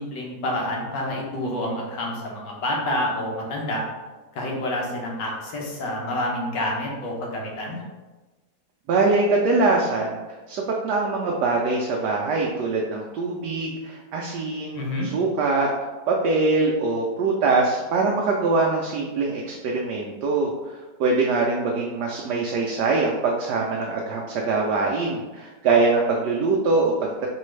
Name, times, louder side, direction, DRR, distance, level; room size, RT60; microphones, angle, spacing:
voice 1, 0.0-3.8 4.3-7.8 14.7-15.1, left 1 dB, 85° left, -1 dB, 1.6 m, -28 dB
voice 2, 8.9-10.2 10.5-15.7 16.1-27.3, right 3 dB, 75° right, -1 dB, 1.1 m, -23 dB
4.5 x 3.3 x 3.2 m, 1.2 s
omnidirectional pair, 1.9 m